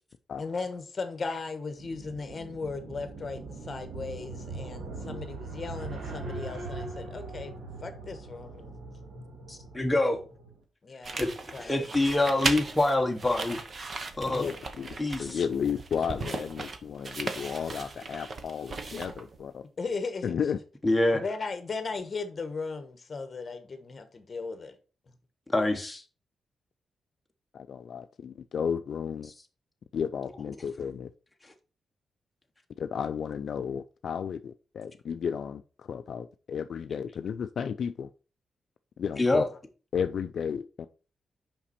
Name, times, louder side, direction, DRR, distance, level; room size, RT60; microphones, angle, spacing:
voice 1, 0.4-7.5 7.8-8.7 10.8-11.2 11.5-11.9 14.3-14.5 16.3-16.4 19.8-20.3 21.2-24.7, left 4 dB, 35° left, 1.1 m, -37 dB
sound 1, 1.8-10.6, right 3 dB, 80° right, 1.9 m, -41 dB
voice 2, 9.5-10.2 11.2-11.3 11.6-13.6 14.2-14.4 15.0-15.4 20.8-21.2 25.5-26.0 39.2-39.4, left 2 dB, 10° left, 1.0 m, -25 dB
sound 2, 11.0-19.4, right 3 dB, 40° right, 0.8 m, -37 dB
voice 3, 14.4-19.6 20.2-20.6 27.5-29.3 29.9-31.1 32.8-38.1 39.0-39.5 39.9-40.9, left 7 dB, 65° left, 0.3 m, -33 dB
5.8 x 5.2 x 4.2 m
wide cardioid pair, 130°, 0 cm